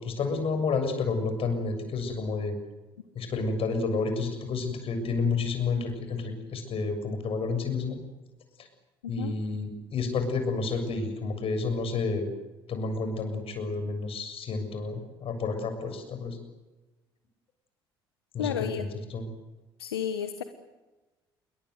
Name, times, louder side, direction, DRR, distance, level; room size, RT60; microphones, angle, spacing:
voice 1, 0.0-2.6 3.2-8.0 8.6-8.7 9.1-12.3 12.7-16.4 18.3-19.3, left 4 dB, 50° left, 7 dB, 7.1 m, -30 dB
voice 2, 18.4-18.8 19.8-20.4, left 9 dB, 80° left, 9 dB, 1.3 m, -32 dB
28.5 x 22.5 x 8.0 m, 1.1 s
figure-of-eight pair, 55°, 13 cm